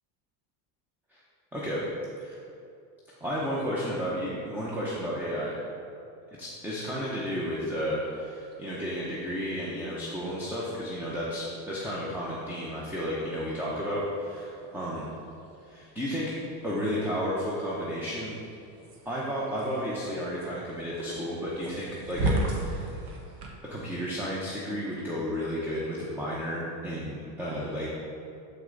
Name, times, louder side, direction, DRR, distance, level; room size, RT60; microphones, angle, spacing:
voice 1, 1.5-1.8 2.2-2.4 3.2-5.6 6.4-15.1 15.6-16.3 16.6-18.4 19.0-23.0 23.6-27.9, equal, 5° right, -6 dB, 0.8 m, -32 dB
sound 1, 8.0-23.5, right 1 dB, 55° right, 1.4 m, -39 dB
7.2 x 6.0 x 3.9 m, 2.6 s
supercardioid pair, 130°, 49 cm